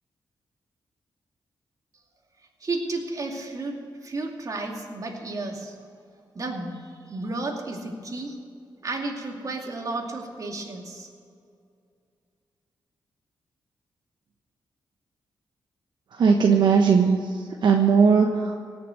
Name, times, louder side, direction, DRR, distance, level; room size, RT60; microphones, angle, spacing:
voice 1, 2.6-5.7 6.3-8.4 8.8-11.1, right 2 dB, 45° right, 1 dB, 2.6 m, -32 dB
voice 2, 16.1-18.6, right 5 dB, 70° right, 2 dB, 1.1 m, -19 dB
18.0 x 6.9 x 8.3 m, 2.3 s
cardioid pair, 80°, 8 cm